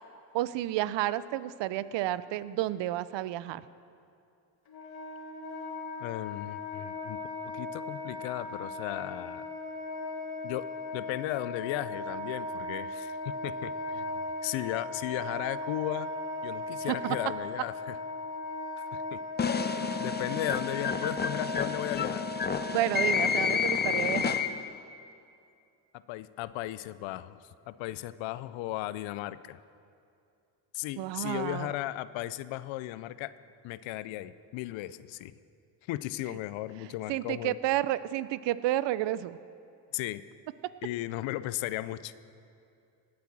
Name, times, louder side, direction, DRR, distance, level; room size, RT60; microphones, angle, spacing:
voice 1, 0.3-3.6 16.9-17.2 22.7-24.4 31.0-31.7 36.3-36.4 37.1-39.4, right 14 dB, 70° right, 16 dB, 0.6 m, -31 dB
Wind instrument woodwind instrument, 4.7-24.2, left 2 dB, 55° left, 2.0 m, -38 dB
voice 2, 6.0-7.2 7.4-9.4 10.4-10.7 10.9-13.2 13.4-14.1 14.4-16.1 16.4-18.0 18.9-19.2 20.0-22.2 26.1-29.6 30.7-33.3 33.6-35.3 35.9-37.6 39.9-40.2 40.8-42.1, left 15 dB, 85° left, 16 dB, 0.6 m, -36 dB
sound 1, 19.4-24.8, left 6 dB, 25° left, 0.6 m, -30 dB
17.5 x 8.5 x 6.1 m, 2.5 s
cardioid pair, 80°, 45 cm